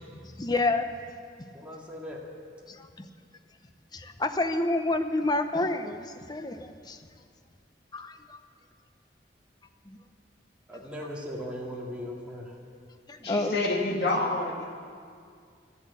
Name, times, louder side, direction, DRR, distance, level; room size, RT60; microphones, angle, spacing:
voice 1, 0.2-0.9 1.4-1.5 2.7-3.1 3.9-7.0 7.9-8.4 9.9-10.0 13.1-13.5, left 2 dB, 25° left, 7 dB, 0.7 m, -29 dB
voice 2, 1.5-2.2 10.7-12.6, equal, 5° right, -4 dB, 2.2 m, -38 dB
voice 3, 13.2-14.7, left 2 dB, 70° left, 0 dB, 1.8 m, -28 dB
13.0 x 11.0 x 8.4 m, 2.2 s
head